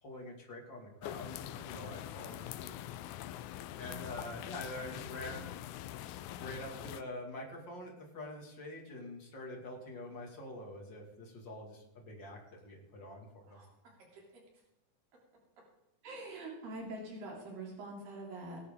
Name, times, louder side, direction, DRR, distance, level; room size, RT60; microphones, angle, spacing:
voice 1, 0.0-2.7 3.8-5.5 6.4-13.6, left 1 dB, 35° left, 0 dB, 2.6 m, -46 dB
sound 1, 1.0-7.0, left 13 dB, 80° left, 1.8 m, -44 dB
voice 2, 13.5-14.2 14.6-14.7 16.0-18.6, right 2 dB, 80° right, -2 dB, 5.0 m, -45 dB
18.5 x 11.0 x 3.8 m, 0.94 s
omnidirectional pair, 3.9 m